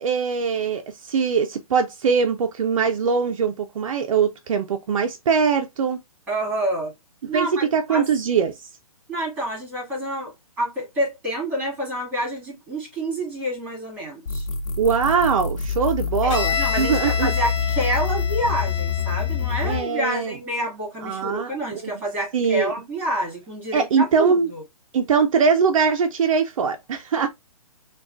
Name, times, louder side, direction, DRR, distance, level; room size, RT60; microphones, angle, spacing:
voice 1, 0.0-6.0 7.3-8.7 14.8-17.3 19.6-20.3 21.0-21.5 22.3-22.7 23.7-24.5 24.9-27.3, right 6 dB, 60° right, 0.5 m, -22 dB
voice 2, 6.3-6.9 7.3-8.1 9.1-14.5 16.2-16.3 16.6-24.6, right 1 dB, 10° right, 1.8 m, -28 dB
sound 1, 14.3-19.8, left 6 dB, 80° left, 0.5 m, -26 dB
Bowed string instrument, 16.3-20.0, left 6 dB, 50° left, 0.9 m, -30 dB
4.7 x 2.3 x 2.5 m
hypercardioid pair, 155°, 19 cm